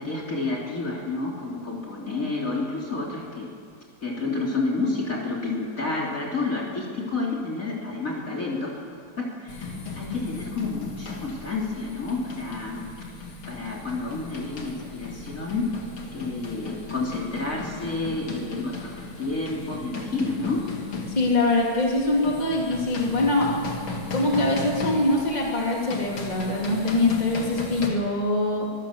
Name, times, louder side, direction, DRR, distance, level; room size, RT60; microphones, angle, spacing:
voice 1, 0.0-3.5 4.0-8.8 9.2-12.9 13.5-15.7 16.1-20.6, left 3 dB, 40° left, -2 dB, 3.4 m, -30 dB
sound 1, 9.5-27.9, left 3 dB, 80° left, 3.2 m, -36 dB
voice 2, 21.1-23.6 24.1-28.7, left 2 dB, 20° left, -2 dB, 3.1 m, -23 dB
25.0 x 16.0 x 7.4 m, 2.2 s
omnidirectional pair, 2.2 m